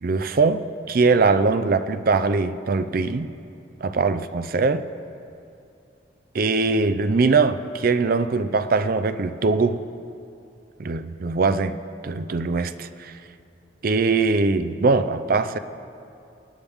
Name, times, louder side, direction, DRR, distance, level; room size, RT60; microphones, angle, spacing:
voice 1, 0.0-3.3 3.8-4.8 6.3-9.8 10.8-11.8 12.0-13.1 13.8-15.6, right 4 dB, 55° right, 11 dB, 0.5 m, -21 dB
25.0 x 9.8 x 3.6 m, 2.6 s
head